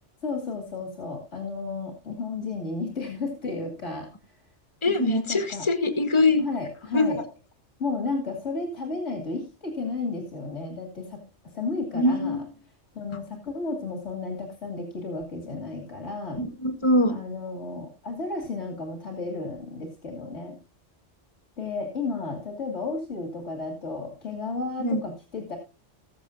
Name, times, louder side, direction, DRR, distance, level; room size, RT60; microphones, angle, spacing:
voice 1, 0.2-4.1 5.0-5.7 6.4-7.2 7.8-11.2 11.5-12.4 12.9-16.4 17.1-20.6 21.6-25.6, left 3 dB, 75° left, 2 dB, 2.9 m, -33 dB
voice 2, 4.8-6.4 6.9-7.3 11.9-12.4 16.3-17.1 24.8-25.0, left 2 dB, 25° left, 7 dB, 1.6 m, -23 dB
20.5 x 7.1 x 2.6 m, 0.30 s
omnidirectional pair, 1.2 m